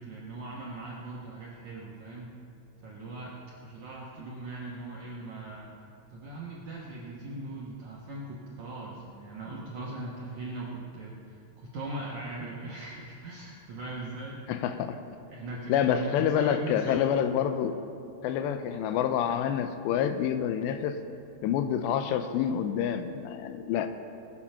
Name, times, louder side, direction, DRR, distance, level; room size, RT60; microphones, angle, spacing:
voice 1, 0.0-2.3 2.8-5.7 6.1-14.7 15.3-17.0, right 2 dB, 70° right, -4 dB, 1.8 m, -40 dB
voice 2, 14.5-15.0 15.7-17.8 18.2-21.0 21.4-23.9, left 9 dB, 85° left, 9 dB, 2.7 m, -27 dB
21.0 x 7.4 x 5.6 m, 2.5 s
omnidirectional pair, 5.2 m